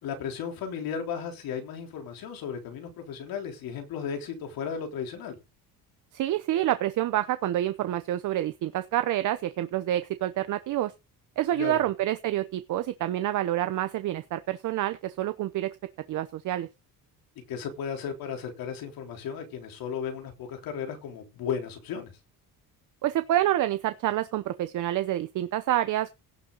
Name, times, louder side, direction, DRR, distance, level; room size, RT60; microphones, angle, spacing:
voice 1, 0.0-5.4 11.5-11.9 17.5-22.1, left 7 dB, 75° left, 3.7 m, -35 dB
voice 2, 6.1-10.9 11.4-15.8 16.1-16.7 23.0-26.1, right 13 dB, 60° right, 0.8 m, -27 dB
17.0 x 7.0 x 4.0 m
cardioid pair, 170°, 35 cm